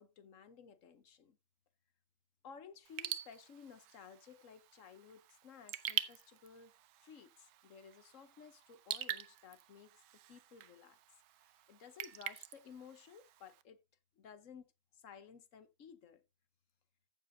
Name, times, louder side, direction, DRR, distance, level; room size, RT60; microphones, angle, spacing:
voice 1, 0.0-1.4 2.4-10.0 10.3-11.0 11.4-13.8 14.2-16.2, left 6 dB, 55° left, 1.0 m, -56 dB
Raindrop / Drip, 2.9-13.6, right 13 dB, 85° right, 1.5 m, -45 dB
14.5 x 7.4 x 2.7 m
omnidirectional pair, 2.1 m